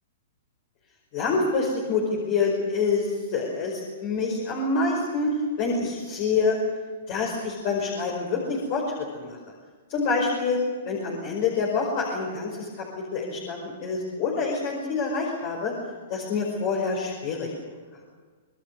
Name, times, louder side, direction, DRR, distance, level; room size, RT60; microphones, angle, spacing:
voice 1, 1.1-6.6 7.1-9.4 9.9-10.6 10.8-12.8 13.1-15.7 16.1-17.5, left 4 dB, 45° left, -1 dB, 5.2 m, -26 dB
26.0 x 20.5 x 6.8 m, 1.5 s
hypercardioid pair, 125°, 0 cm